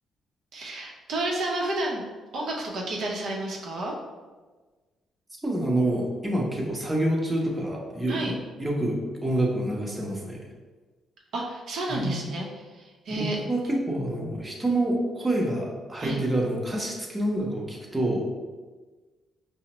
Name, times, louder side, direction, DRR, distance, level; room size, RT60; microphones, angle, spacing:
voice 1, 0.5-2.0 2.3-3.9 8.1-8.3 11.3-12.5 12.7-13.4 16.0-16.2, right 2 dB, 70° right, -1 dB, 0.6 m, -31 dB
voice 2, 5.4-8.3 8.6-10.4 11.9-12.2 13.1-18.2, right 1 dB, 15° right, -2 dB, 0.7 m, -27 dB
4.9 x 2.0 x 2.9 m, 1.3 s
cardioid pair, 90°, 0 cm